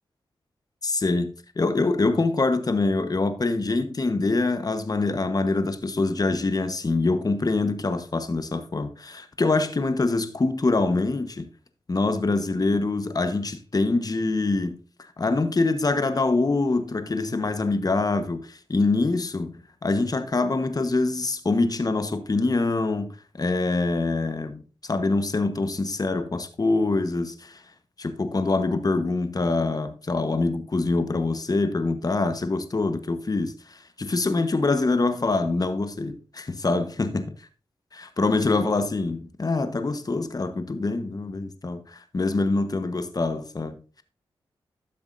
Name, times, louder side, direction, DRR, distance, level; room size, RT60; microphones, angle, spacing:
voice 1, 0.8-11.5 11.9-27.6 28.0-37.3 37.9-44.0, left 3 dB, 40° left, 1.1 m, -25 dB
12.5 x 7.1 x 2.6 m
cardioid pair, 50°, 10 cm